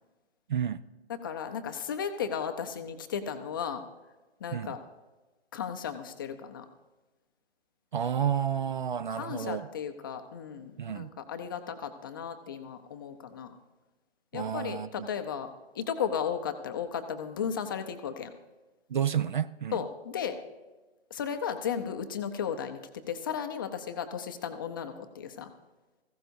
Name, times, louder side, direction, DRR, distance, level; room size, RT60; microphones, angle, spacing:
voice 1, 0.5-0.8 4.5-4.8 7.9-9.7 10.8-11.1 14.3-15.1 18.9-19.7, right 8 dB, 50° right, 16 dB, 0.4 m, -30 dB
voice 2, 1.1-3.8 4.4-4.8 5.5-6.7 9.1-13.5 14.3-18.3 19.7-20.4 21.1-25.5, left 7 dB, 20° left, 7 dB, 0.5 m, -35 dB
17.5 x 15.5 x 2.6 m, 1.2 s
hypercardioid pair, 150°, 33 cm